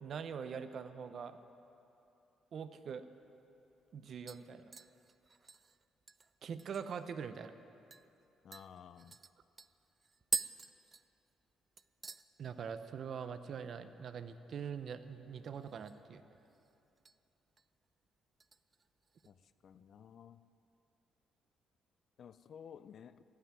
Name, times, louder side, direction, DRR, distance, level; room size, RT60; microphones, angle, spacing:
voice 1, 0.0-1.4 2.5-3.1 3.9-4.7 6.4-7.5 12.4-16.2, right 6 dB, 60° right, 0.7 m, -43 dB
sound 1, 3.2-3.3 3.6-4.0 4.3-7.1 7.4-7.5 7.9-8.1 8.5-11.5 11.8-12.3 12.6-13.0 13.3-13.4 15.5-16.1 16.4-17.2 17.6-17.8 18.4-19.3 19.7-19.8, right 4 dB, 35° right, 0.4 m, -45 dB
voice 2, 8.4-9.2 19.3-20.4 22.2-23.2, left 8 dB, 60° left, 0.4 m, -54 dB
16.5 x 5.9 x 9.8 m
cardioid pair, 90°, 0 cm